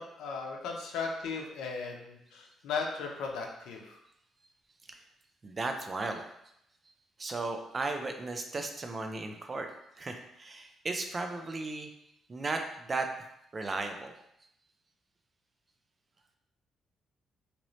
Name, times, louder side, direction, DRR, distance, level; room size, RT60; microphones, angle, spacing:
voice 1, 0.0-4.0, left 4 dB, 85° left, 1 dB, 0.6 m, -37 dB
voice 2, 5.4-6.2 7.2-9.7 10.0-11.9 12.3-13.3 13.5-14.1, right 3 dB, 30° right, 5 dB, 0.4 m, -35 dB
2.9 x 2.6 x 3.0 m, 0.79 s
cardioid pair, 90°, 0 cm